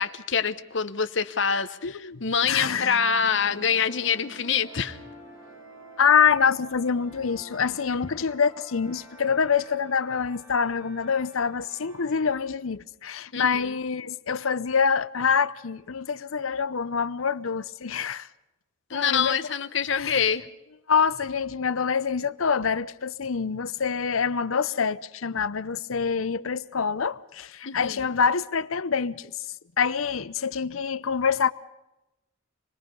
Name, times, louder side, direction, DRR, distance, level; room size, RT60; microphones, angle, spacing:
voice 1, 0.0-5.0 13.3-13.7 18.9-20.4 27.7-27.9, left 6 dB, 65° left, 1.0 m, -26 dB
voice 2, 1.8-2.9 6.0-18.3 18.9-19.4 19.9-20.2 20.9-31.5, left 6 dB, 85° left, 0.7 m, -26 dB
sound 1, 2.5-12.4, right 1 dB, 75° right, 7.3 m, -47 dB
27.0 x 20.5 x 5.4 m
head